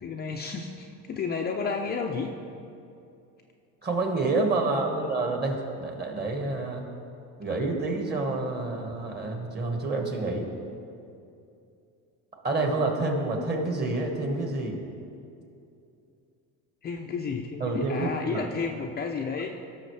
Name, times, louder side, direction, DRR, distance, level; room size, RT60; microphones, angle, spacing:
voice 1, 0.0-2.3 4.6-5.1 16.8-19.6, left 5 dB, 25° left, 1 dB, 0.5 m, -32 dB
voice 2, 3.8-6.8 7.4-10.5 12.4-14.8 17.6-18.5, right 2 dB, 25° right, 2 dB, 1.6 m, -28 dB
17.0 x 6.4 x 3.3 m, 2.6 s
cardioid pair, 120°, 37 cm